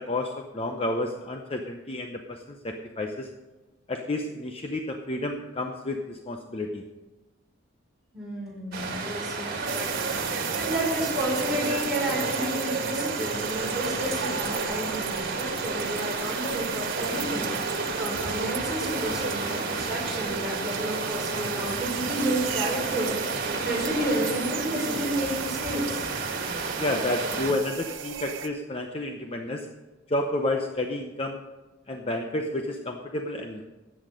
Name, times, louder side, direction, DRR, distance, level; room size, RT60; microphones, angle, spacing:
voice 1, 0.0-3.3 3.9-6.8 26.8-29.7 30.1-31.4 31.9-33.6, left 2 dB, 30° left, 3 dB, 0.8 m, -30 dB
voice 2, 8.1-26.1, right 1 dB, ahead, -5 dB, 5.2 m, -31 dB
sound 1, 8.7-27.5, right 3 dB, 50° right, 2.1 m, -31 dB
sound 2, 9.7-28.5, right 8 dB, 80° right, 0.7 m, -36 dB
13.5 x 8.7 x 5.2 m, 1.1 s
head